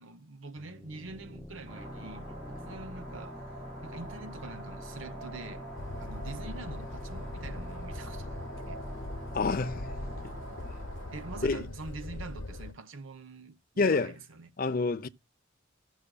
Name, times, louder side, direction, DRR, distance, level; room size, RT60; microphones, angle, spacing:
voice 1, 0.0-3.5 3.8-5.7 6.0-8.4 8.7-8.8 11.1-14.5, right 3 dB, 75° right, 0.8 m, -45 dB
sound 1, 0.6-12.0, equal, 5° left, 0.9 m, -46 dB
sound 2, 1.7-11.5, right 1 dB, 50° right, 2.3 m, -46 dB
sound 3, 5.8-12.7, left 1 dB, 75° left, 0.8 m, -41 dB
voice 2, 9.3-10.0 10.2-10.4 11.4-11.7 13.8-14.1 14.6-15.1, left 4 dB, 45° left, 0.6 m, -28 dB
16.5 x 6.4 x 2.3 m
head